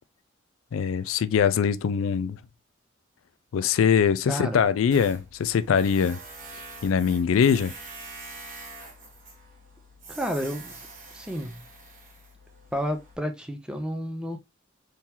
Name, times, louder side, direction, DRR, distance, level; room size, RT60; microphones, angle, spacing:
voice 1, 0.7-2.4 3.5-6.2 6.8-7.7, left 7 dB, 90° left, 0.3 m, -22 dB
voice 2, 4.3-4.6 10.1-10.9 11.1-11.6 12.7-14.4, equal, 5° right, 0.5 m, -31 dB
Tools, 4.9-13.2, right 2 dB, 40° right, 1.3 m, -45 dB
3.8 x 2.9 x 2.6 m
head